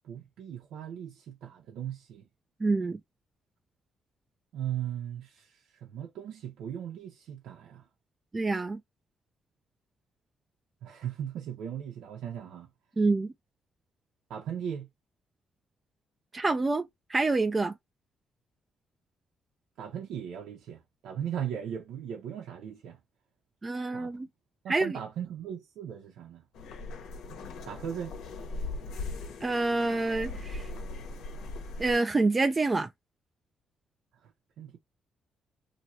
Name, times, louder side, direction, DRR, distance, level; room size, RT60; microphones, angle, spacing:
voice 1, 0.0-2.2 4.5-7.8 10.8-12.7 14.3-14.9 19.8-23.0 23.9-24.1 24.6-26.4 27.7-28.2 34.2-34.3 34.6-34.8, right 9 dB, 85° right, 0.9 m, -38 dB
voice 2, 2.6-3.0 8.3-8.8 13.0-13.3 16.3-17.7 23.6-24.3 24.7-25.0 29.4-30.7 31.8-32.9, right 3 dB, 25° right, 0.5 m, -27 dB
sound 1, 26.5-31.9, left 2 dB, 85° left, 1.3 m, -39 dB
3.0 x 2.9 x 2.7 m
cardioid pair, 90°, 0 cm